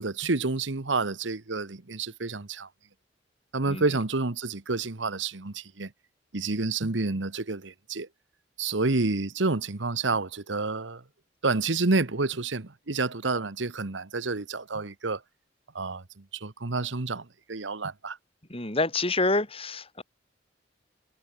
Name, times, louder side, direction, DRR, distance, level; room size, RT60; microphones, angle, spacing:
voice 1, 0.0-2.7 3.5-5.9 6.3-8.1 8.6-11.0 11.4-15.2 15.7-16.0 16.4-18.2, right 3 dB, 80° right, 1.3 m, -29 dB
voice 2, 18.5-20.0, left 2 dB, 30° left, 4.8 m, -27 dB
head